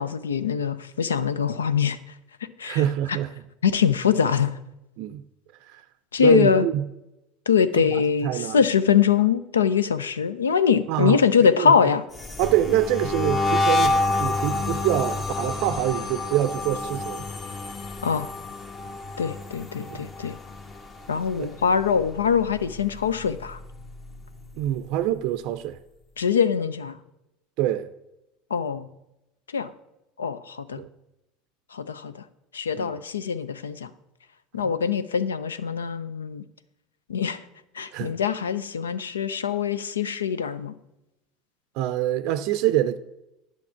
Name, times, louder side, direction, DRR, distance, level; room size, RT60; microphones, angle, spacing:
voice 1, 0.0-2.0 2.6-2.8 3.6-4.5 6.1-6.7 7.5-12.0 18.0-18.3 19.2-20.4 21.1-23.6 26.2-27.0 28.5-28.9 29.5-29.7 30.2-30.8 31.7-32.2 32.5-33.9 34.5-36.4 37.1-37.4 37.8-40.8, left 7 dB, 80° left, 0.5 m, -23 dB
voice 2, 2.6-3.3 5.0-5.2 5.7-5.8 6.2-6.8 7.8-7.9 8.2-8.6 10.9-11.2 11.6-11.7 12.4-17.3 19.9-20.1 21.4-21.5 24.6-25.8 27.6-27.9 30.8-30.9 32.8-32.9 34.6-34.7 37.9-38.2 41.8-43.0, right 12 dB, 60° right, 0.4 m, -25 dB
sound 1, 12.1-21.3 21.6-22.0 22.3-23.9, left 2 dB, 30° left, 1.3 m, -28 dB
10.5 x 5.8 x 5.7 m
figure-of-eight pair, 70°, 0 cm